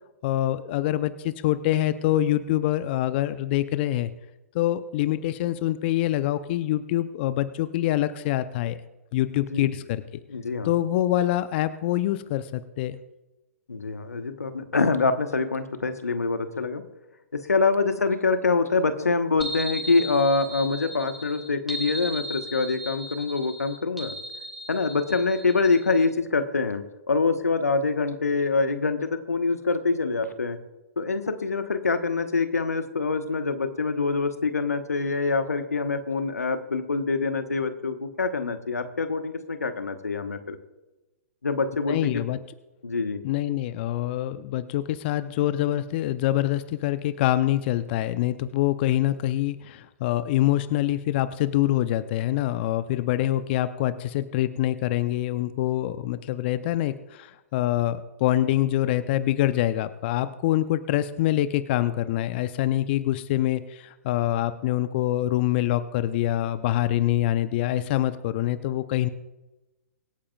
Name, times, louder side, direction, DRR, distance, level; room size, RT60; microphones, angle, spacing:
voice 1, 0.2-4.1 4.5-8.8 9.1-10.0 10.6-13.0 41.9-42.4 43.2-69.1, left 13 dB, 45° left, 13 dB, 0.6 m, -25 dB
voice 2, 9.3-9.7 10.3-10.7 13.7-16.8 17.3-24.1 24.7-30.6 31.0-40.6 41.4-42.2 42.8-43.2, left 4 dB, 85° left, 9 dB, 1.1 m, -25 dB
sound 1, 19.4-26.1, right 1 dB, ahead, 1.5 m, -37 dB
25.0 x 8.6 x 2.4 m, 1.1 s
figure-of-eight pair, 120°, 8 cm